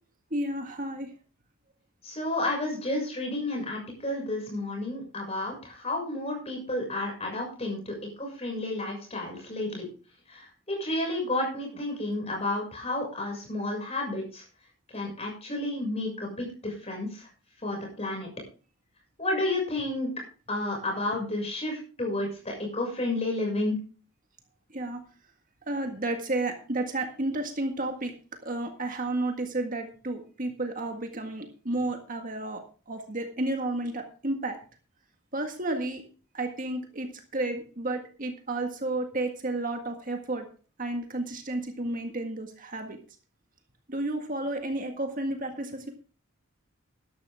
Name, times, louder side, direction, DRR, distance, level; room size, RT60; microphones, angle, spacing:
voice 1, 0.3-1.1 24.7-25.0 25.7-28.1 28.4-34.6 35.3-36.0 36.3-40.5 40.8-43.0 43.9-45.9, right 2 dB, 40° right, 4 dB, 1.8 m, -32 dB
voice 2, 2.0-9.9 10.3-14.4 14.9-17.3 17.6-18.3 19.2-20.1 20.5-23.8, left 2 dB, 30° left, 0 dB, 6.4 m, -31 dB
13.5 x 12.0 x 3.6 m, 0.37 s
head